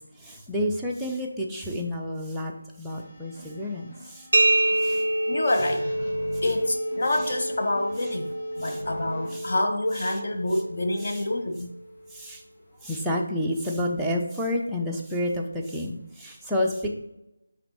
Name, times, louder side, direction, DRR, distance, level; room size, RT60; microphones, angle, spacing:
voice 1, 0.2-2.5 2.8-4.2 4.8-5.0 8.6-8.8 9.3-9.5 11.0-11.2 12.1-12.4 12.8-16.9, left 1 dB, ahead, -4 dB, 0.5 m, -29 dB
sound 1, 2.9-9.4, left 1 dB, 20° left, 1.0 m, -43 dB
sound 2, 4.3-11.9, right 1 dB, 55° right, 0.4 m, -28 dB
voice 2, 5.3-5.9 6.4-8.3 8.6-11.7, left 1 dB, 40° left, 3 dB, 0.6 m, -27 dB
10.0 x 3.4 x 3.0 m, 0.86 s
figure-of-eight pair, 160°, 0 cm